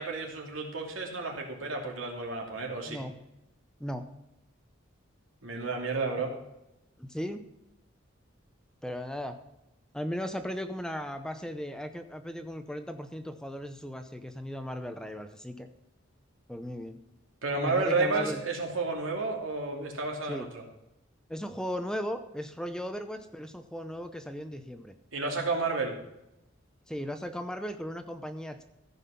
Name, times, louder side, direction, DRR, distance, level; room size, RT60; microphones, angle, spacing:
voice 1, 0.0-3.0 5.4-6.3 17.4-20.6 25.1-25.9, right 3 dB, 80° right, 1 dB, 2.7 m, -31 dB
voice 2, 2.9-3.2 3.8-4.1 6.2-6.3 7.0-7.4 8.8-9.4 9.9-15.7 16.5-17.0 17.6-18.4 20.3-20.5 21.3-24.9 26.9-28.6, equal, 5° left, 8 dB, 0.7 m, -37 dB
15.0 x 5.7 x 5.7 m, 0.89 s
head